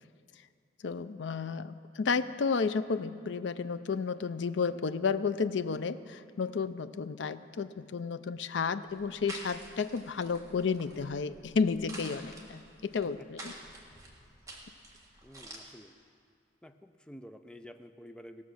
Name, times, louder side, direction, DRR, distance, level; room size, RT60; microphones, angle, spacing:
voice 1, 0.8-13.5, left 5 dB, 80° left, 13 dB, 0.5 m, -32 dB
sound 1, 8.9-15.6, right 1 dB, 20° right, 1.5 m, -49 dB
voice 2, 15.2-16.0 16.6-18.4, equal, 5° left, 7 dB, 0.4 m, -50 dB
17.5 x 7.0 x 6.3 m, 2.2 s
head